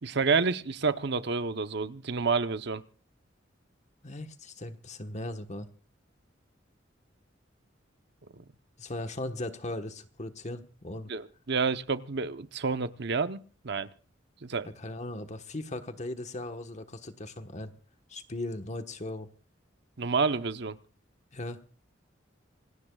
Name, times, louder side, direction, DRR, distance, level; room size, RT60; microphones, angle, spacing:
voice 1, 0.0-2.8 8.3-8.4 11.1-13.4 13.6-13.9 14.4-14.7 20.0-20.8, right 4 dB, 65° right, 11 dB, 0.9 m, -29 dB
voice 2, 4.0-5.7 8.8-11.1 14.8-17.7 18.1-19.3 21.3-21.6, left 1 dB, 40° left, 8 dB, 1.3 m, -38 dB
27.0 x 18.0 x 2.4 m, 0.40 s
head